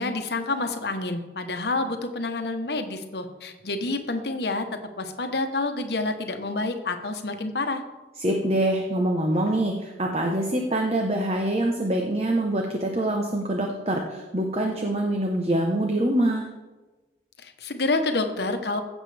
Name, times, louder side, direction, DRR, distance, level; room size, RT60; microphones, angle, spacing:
voice 1, 0.0-4.7 5.0-7.8 17.4-18.8, left 2 dB, 70° left, 6 dB, 1.1 m, -28 dB
voice 2, 8.2-16.5, right 1 dB, 35° right, 2 dB, 0.9 m, -25 dB
16.0 x 7.3 x 3.4 m, 1.2 s
head